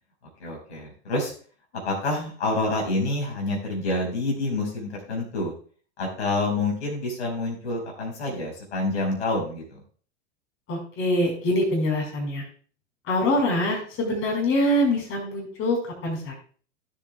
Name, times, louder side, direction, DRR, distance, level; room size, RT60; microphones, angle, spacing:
voice 1, 0.4-1.3 1.8-5.5 6.0-9.8, left 2 dB, 65° left, -1 dB, 5.2 m, -27 dB
voice 2, 10.7-12.4 13.1-16.3, left 1 dB, 35° left, 0 dB, 5.1 m, -24 dB
17.0 x 7.6 x 2.4 m, 0.43 s
figure-of-eight pair, 90°, 36 cm